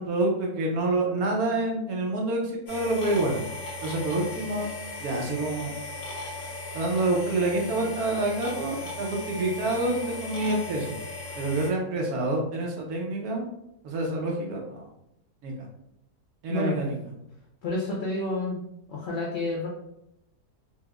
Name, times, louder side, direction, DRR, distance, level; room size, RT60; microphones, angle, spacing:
voice 1, 0.0-3.4 3.8-4.7 5.0-5.7 6.7-11.0 11.3-13.4 13.8-14.9 15.4-15.5 16.4-17.0, right 2 dB, 70° right, -1 dB, 1.1 m, -27 dB
sound 1, 2.7-11.7, left 2 dB, 80° left, 1.5 m, -37 dB
voice 2, 17.6-18.6 18.9-19.7, left 2 dB, 60° left, -3 dB, 0.9 m, -29 dB
4.5 x 2.0 x 2.3 m, 0.82 s
omnidirectional pair, 1.7 m